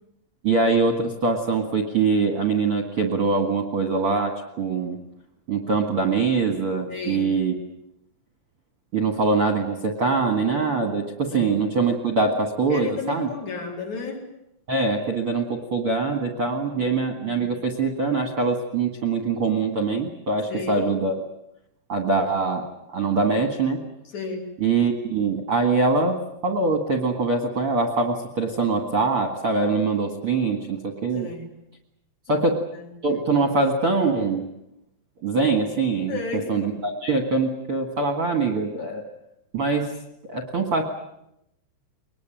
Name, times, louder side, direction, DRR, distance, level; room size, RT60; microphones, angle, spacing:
voice 1, 0.4-5.0 5.5-7.5 8.9-13.3 14.7-21.1 21.9-23.8 24.6-31.3 32.3-32.6 33.0-34.5 35.2-36.2 36.5-39.0 39.5-39.9 40.3-40.8, right 4 dB, 45° right, 3 dB, 2.0 m, -23 dB
voice 2, 6.9-7.3 11.3-11.6 12.7-14.3 16.7-16.9 20.5-20.9 24.1-24.5 31.1-31.5 32.3-32.5 32.7-32.9 36.1-36.6, left 4 dB, 45° left, 0 dB, 5.1 m, -32 dB
23.0 x 21.0 x 9.1 m, 0.81 s
omnidirectional pair, 4.9 m